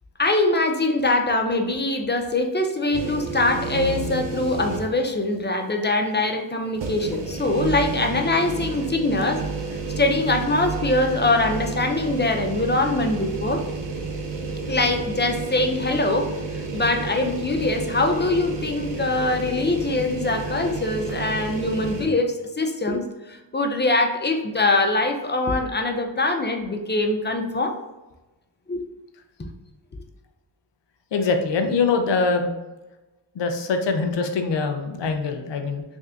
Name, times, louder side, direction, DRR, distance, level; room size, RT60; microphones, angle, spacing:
voice 1, 0.2-9.4 10.0-13.6 14.7-27.8 28.7-28.8 29.4-29.5, left 2 dB, 25° left, 4 dB, 0.5 m, -23 dB
sound 1, 2.9-5.1 5.5-5.6 6.7-22.1, right 3 dB, 70° right, 0.8 m, -31 dB
voice 2, 31.1-32.5 33.3-35.8, left 4 dB, 70° left, 6 dB, 0.7 m, -23 dB
3.2 x 2.7 x 3.6 m, 1.1 s
cardioid pair, 55°, 45 cm